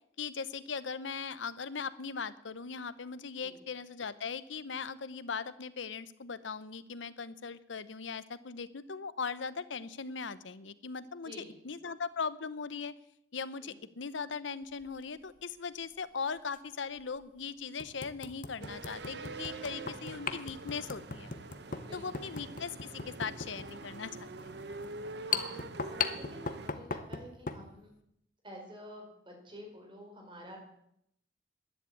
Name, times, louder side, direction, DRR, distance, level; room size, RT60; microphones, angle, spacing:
voice 1, 0.2-12.9 13.3-21.3 21.9-24.5, left 5 dB, 85° left, 15 dB, 0.8 m, -39 dB
sound 1, 14.8-15.0 16.5-16.6 17.2-17.3 17.8-27.7, left 5 dB, 45° left, 1.0 m, -39 dB
sound 2, 18.6-26.7, right 3 dB, 65° right, 0.9 m, -45 dB
voice 2, 21.8-22.2 25.3-27.9 28.4-30.6, equal, 25° right, 1 dB, 4.3 m, -49 dB
12.0 x 10.5 x 8.5 m, 0.76 s
head